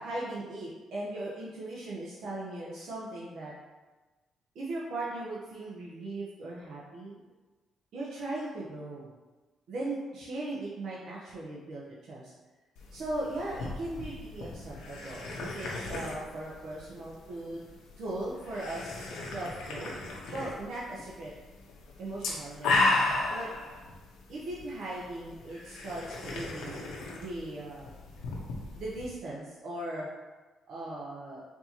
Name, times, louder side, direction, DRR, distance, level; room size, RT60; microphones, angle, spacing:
voice 1, 0.0-3.5 4.5-7.2 7.9-9.1 9.7-12.3 12.9-17.6 18.0-19.9 20.3-21.3 22.0-22.9 23.3-23.5 24.3-26.8 27.1-28.0 28.8-30.1 30.7-31.4, right 2 dB, 70° right, -6 dB, 0.7 m, -38 dB
sound 1, 12.8-29.1, left 2 dB, 90° left, 0.7 m, -35 dB
4.4 x 2.7 x 2.9 m, 1.2 s
cardioid pair, 90°, 0 cm